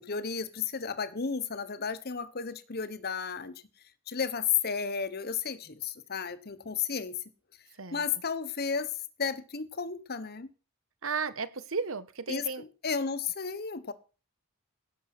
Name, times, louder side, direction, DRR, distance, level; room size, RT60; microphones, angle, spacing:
voice 1, 0.0-3.5 4.1-7.2 7.9-8.9 9.2-10.5 12.3-13.9, left 6 dB, 50° left, 1.2 m, -33 dB
voice 2, 11.0-12.6, right 5 dB, 65° right, 1.2 m, -34 dB
17.5 x 7.1 x 6.0 m
head